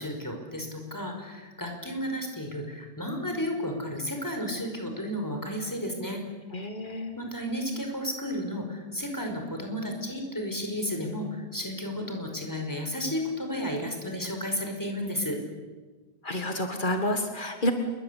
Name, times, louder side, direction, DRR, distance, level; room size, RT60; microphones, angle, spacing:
voice 1, 0.0-6.2 7.2-15.4, equal, 5° left, 3 dB, 5.2 m, -33 dB
voice 2, 6.5-7.1 16.2-17.7, left 1 dB, 35° left, 5 dB, 0.7 m, -29 dB
28.0 x 23.0 x 8.5 m, 1.4 s
omnidirectional pair, 4.1 m